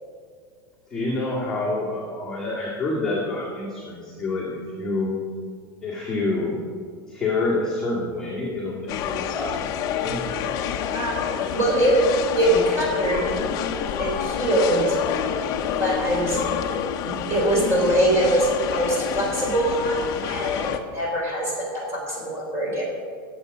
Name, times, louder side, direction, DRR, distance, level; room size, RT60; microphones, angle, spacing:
voice 1, 0.9-5.1 5.8-6.6 7.1-10.2, left 2 dB, 5° left, -10 dB, 2.0 m, -27 dB
sound 1, 8.9-20.8, left 8 dB, 30° left, 0.7 m, -28 dB
voice 2, 11.5-12.0 12.4-13.3 14.0-15.0 15.8-16.4 17.0-20.7 20.9-22.9, right 1 dB, 20° right, -3 dB, 4.0 m, -23 dB
20.5 x 7.8 x 5.3 m, 2.1 s
supercardioid pair, 180°, 12 cm